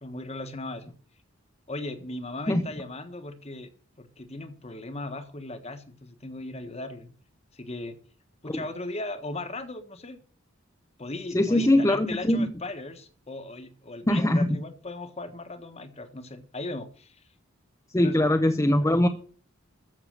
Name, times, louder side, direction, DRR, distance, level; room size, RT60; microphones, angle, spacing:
voice 1, 0.0-0.9 1.7-3.7 4.0-7.1 7.5-8.0 8.4-10.2 11.0-17.2 18.0-18.3, left 2 dB, 30° left, 9 dB, 1.4 m, -37 dB
voice 2, 11.3-12.5 14.1-14.5 17.9-19.1, left 1 dB, 15° left, 7 dB, 0.7 m, -22 dB
14.0 x 6.8 x 6.5 m, 0.42 s
head